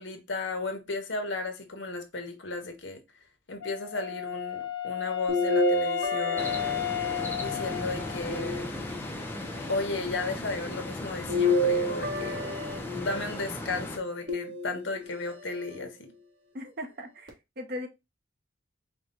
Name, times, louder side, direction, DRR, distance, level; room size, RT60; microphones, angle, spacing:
voice 1, 0.0-3.0 3.5-6.6 7.4-8.7 9.7-12.4 12.9-16.1, left 3 dB, 70° left, 1.0 m, -34 dB
Wind instrument woodwind instrument, 3.6-8.4, left 11 dB, 85° left, 0.5 m, -33 dB
sound 1, 5.3-7.5 8.3-9.3 11.3-13.3 14.3-15.1 15.8-15.9 17.3-17.4, left 1 dB, 80° right, 1.4 m, -29 dB
sound 2, 6.4-14.0, left 1 dB, 10° left, 0.5 m, -37 dB
voice 2, 16.5-17.9, left 1 dB, 55° right, 0.8 m, -38 dB
4.7 x 2.2 x 3.8 m
head